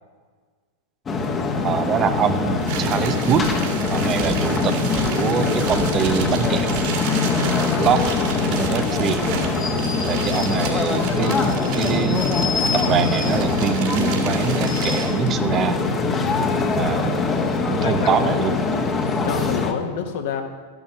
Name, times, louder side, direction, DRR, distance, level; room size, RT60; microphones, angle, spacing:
sound 1, 1.1-19.7, left 4 dB, 20° left, 1.3 m, -22 dB
voice 1, 1.6-3.5 3.9-6.8 7.4-8.1 8.5-9.2 10.0-11.4 11.7-12.2 12.7-15.8 16.7-17.2 17.6-18.5, right 8 dB, 30° right, 9 dB, 0.8 m, -24 dB
sound 2, 2.6-15.3, right 6 dB, 50° right, 2.4 m, -32 dB
voice 2, 17.7-18.4 19.3-20.4, left 7 dB, 50° left, 4 dB, 1.5 m, -28 dB
13.5 x 10.5 x 5.4 m, 1.5 s
figure-of-eight pair, 90°, 0 cm